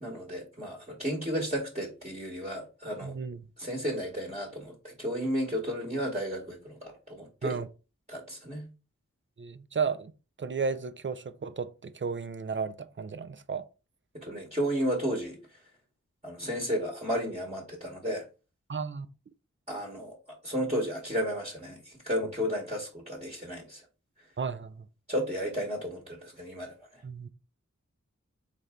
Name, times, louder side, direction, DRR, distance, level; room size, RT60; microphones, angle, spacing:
voice 1, 0.0-3.2 3.6-7.6 8.1-8.7 14.1-15.4 16.2-18.2 19.7-20.2 20.4-23.8 25.1-26.8, equal, 20° right, 1.3 m, -33 dB
voice 2, 3.0-3.4 7.4-7.7 9.4-10.1 10.4-13.6 18.7-19.1 24.4-24.7 27.0-27.3, right 5 dB, 40° right, 0.5 m, -33 dB
4.0 x 3.3 x 3.6 m
wide cardioid pair, 55°, 30 cm